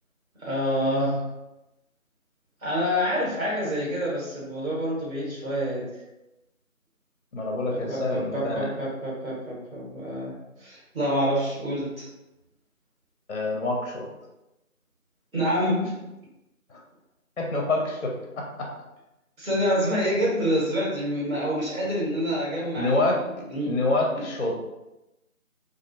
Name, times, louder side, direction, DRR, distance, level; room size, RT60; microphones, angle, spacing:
voice 1, 0.4-1.3 2.6-5.9 7.9-10.3 10.6-12.1 15.3-16.0 19.4-23.0 23.5-23.8, equal, 70° right, -6 dB, 1.4 m, -27 dB
voice 2, 7.3-8.7 13.3-14.1 16.7-16.8 17.4-18.7 22.8-23.2 23.6-24.6, left 2 dB, 55° left, 0 dB, 0.5 m, -26 dB
2.4 x 2.0 x 2.6 m, 0.95 s
figure-of-eight pair, 165°, 43 cm